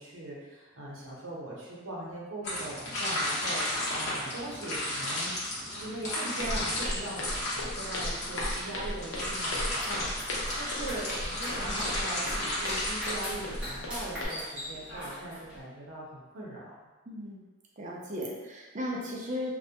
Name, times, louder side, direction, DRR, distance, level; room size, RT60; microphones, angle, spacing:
voice 1, 0.0-5.3 5.7-16.8, right 1 dB, 80° right, -4 dB, 0.7 m, -40 dB
sound 1, 2.4-13.8, left 1 dB, 55° left, 0.9 m, -34 dB
Walk footsteps, 6.4-14.3, left 1 dB, 90° left, 0.5 m, -37 dB
sound 2, 9.6-15.6, equal, 5° right, 0.7 m, -42 dB
voice 2, 17.1-17.4 17.8-19.5, left 1 dB, 40° right, -2 dB, 0.4 m, -36 dB
2.2 x 2.1 x 2.7 m, 1.2 s
head